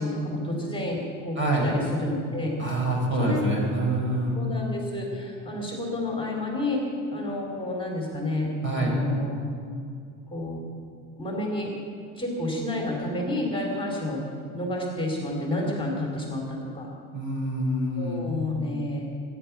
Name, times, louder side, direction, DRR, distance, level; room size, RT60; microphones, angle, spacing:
voice 1, 0.0-2.5 3.2-3.7 4.3-9.4 10.3-10.6 11.2-11.7 12.2-14.2 14.5-16.9 17.9-19.0, left 1 dB, 15° left, -1 dB, 3.3 m, -30 dB
voice 2, 1.4-1.7 2.6-4.4 8.6-9.0 17.1-18.2, right 1 dB, 35° right, 0 dB, 5.5 m, -26 dB
23.0 x 10.5 x 6.0 m, 2.4 s
cardioid pair, 100°, 35 cm